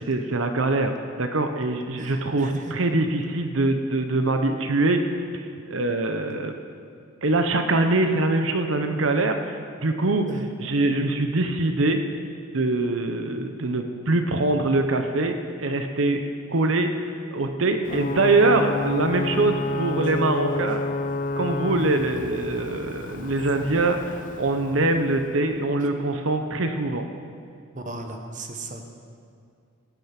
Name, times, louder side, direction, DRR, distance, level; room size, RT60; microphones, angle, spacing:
voice 1, 0.1-0.9 1.2-5.0 5.3-6.6 7.2-10.3 10.6-12.0 12.5-16.2 16.5-20.8 21.4-27.0, right 2 dB, 65° right, 6 dB, 0.9 m, -23 dB
voice 2, 2.0-2.7 10.3-10.5 27.7-28.8, right 2 dB, 35° right, 4 dB, 1.2 m, -36 dB
Ocean / Boat Water vehicle / Alarm, 17.9-25.4, left 2 dB, 40° left, 0.4 m, -30 dB
16.5 x 9.1 x 5.9 m, 2.3 s
head